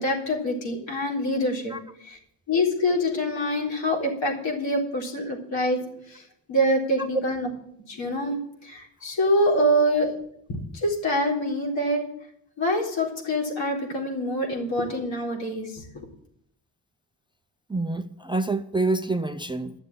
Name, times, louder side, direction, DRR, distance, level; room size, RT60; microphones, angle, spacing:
voice 1, 0.0-1.7 2.0-2.2 2.5-5.8 6.1-6.2 6.5-7.5 7.9-10.1 10.5-12.0 12.6-16.1, equal, 75° left, 4.0 m, -25 dB
voice 2, 17.7-19.7, right 2 dB, 10° right, 0.5 m, -27 dB
11.5 x 7.0 x 8.8 m
wide cardioid pair, 120°, 45 cm